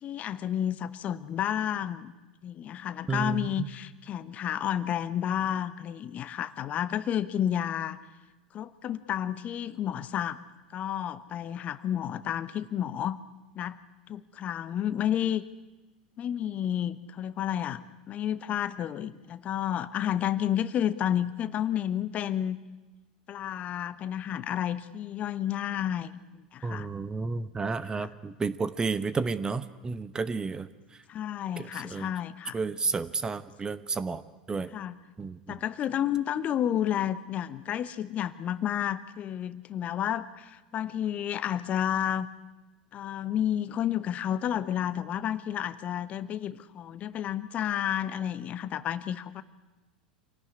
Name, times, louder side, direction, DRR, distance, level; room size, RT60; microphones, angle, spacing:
voice 1, 0.0-2.1 2.4-8.0 8.5-10.4 10.7-13.2 13.6-13.8 14.1-15.4 16.2-17.8 18.1-22.6 23.3-26.9 28.0-28.1 31.1-32.6 34.7-35.0 35.5-42.3 42.9-49.4, left 10 dB, 30° left, 15 dB, 1.0 m, -31 dB
voice 2, 3.1-3.7 26.6-30.7 31.6-32.1 32.5-34.2 34.5-34.7 35.2-35.5, right 4 dB, 15° right, 15 dB, 1.0 m, -31 dB
26.0 x 18.0 x 9.8 m, 1.2 s
figure-of-eight pair, 85°, 5 cm